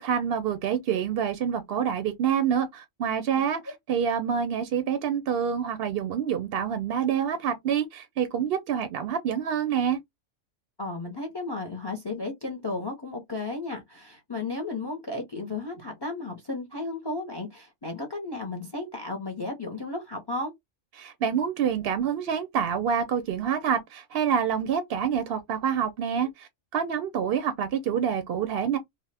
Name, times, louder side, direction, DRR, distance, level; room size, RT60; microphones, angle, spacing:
voice 1, 0.0-3.6 3.9-10.0 21.0-28.8, right 8 dB, 65° right, 0.7 m, -27 dB
voice 2, 10.8-20.5, left 2 dB, 25° left, 0.6 m, -34 dB
2.8 x 2.1 x 3.2 m
omnidirectional pair, 1.3 m